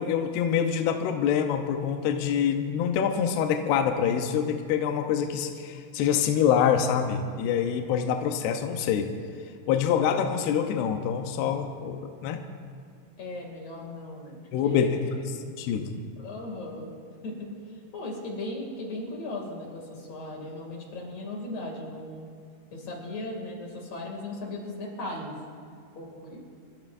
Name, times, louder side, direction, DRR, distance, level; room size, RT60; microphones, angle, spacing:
voice 1, 0.0-9.1 9.7-12.5 14.5-15.0 15.6-16.0, left 8 dB, 80° left, 4 dB, 2.3 m, -25 dB
voice 2, 13.2-14.4 14.6-15.0 16.2-16.9 17.2-22.2 22.7-25.3 25.9-26.4, left 1 dB, 40° left, -1 dB, 2.7 m, -37 dB
28.0 x 13.0 x 2.6 m, 2.2 s
omnidirectional pair, 5.7 m